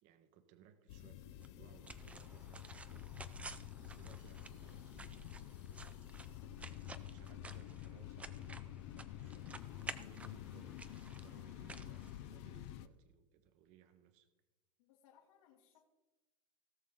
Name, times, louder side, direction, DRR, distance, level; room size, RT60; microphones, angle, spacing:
voice 1, 0.0-3.2 3.8-5.7 6.1-9.5 10.1-14.3, right 8 dB, 45° right, 10 dB, 1.0 m, -65 dB
sound 1, 0.9-12.9, left 12 dB, 55° left, 0.6 m, -49 dB
sound 2, 1.4-12.7, right 3 dB, 10° right, 0.4 m, -53 dB
voice 2, 14.8-15.8, left 9 dB, 85° left, -3 dB, 2.3 m, -67 dB
18.0 x 6.7 x 3.8 m, 1.1 s
supercardioid pair, 155°, 17 cm